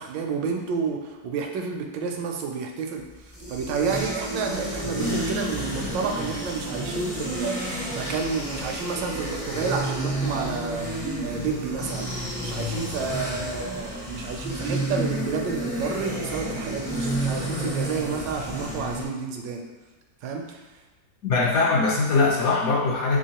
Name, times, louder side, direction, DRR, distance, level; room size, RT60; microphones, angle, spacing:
voice 1, 0.0-19.6 20.2-20.6, right 5 dB, 80° right, 3 dB, 1.2 m, -30 dB
sound 1, 3.1-19.0, right 1 dB, 20° left, 0.5 m, -30 dB
voice 2, 21.2-23.2, left 3 dB, 65° left, -3 dB, 0.9 m, -21 dB
3.6 x 3.3 x 2.8 m, 1.2 s
omnidirectional pair, 2.0 m